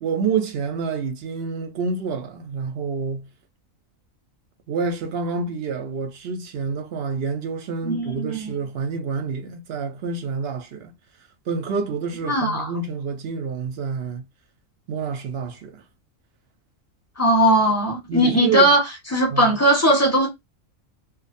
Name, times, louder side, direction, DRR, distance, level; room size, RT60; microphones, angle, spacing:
voice 1, 0.0-3.3 4.7-10.9 11.5-14.3 14.9-15.8 18.1-18.7 19.3-19.5, right 5 dB, 60° right, 0.7 m, -28 dB
voice 2, 7.8-8.5 12.3-12.7 17.2-18.8 19.1-20.3, right 1 dB, 15° left, 0.9 m, -18 dB
2.5 x 2.2 x 2.5 m
omnidirectional pair, 1.4 m